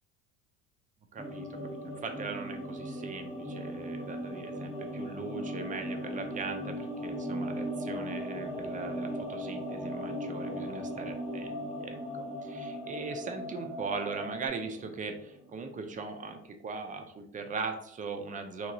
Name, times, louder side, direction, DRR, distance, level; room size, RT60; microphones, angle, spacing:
voice 1, 1.1-12.0 12.4-18.7, right 4 dB, 25° right, 6 dB, 0.4 m, -40 dB
sound 1, 1.2-15.7 16.0-16.1, equal, 15° left, 1.1 m, -39 dB
sound 2, 4.3-14.5, equal, 85° right, 0.8 m, -43 dB
3.0 x 2.7 x 2.6 m, 0.72 s
supercardioid pair, 100°, 37 cm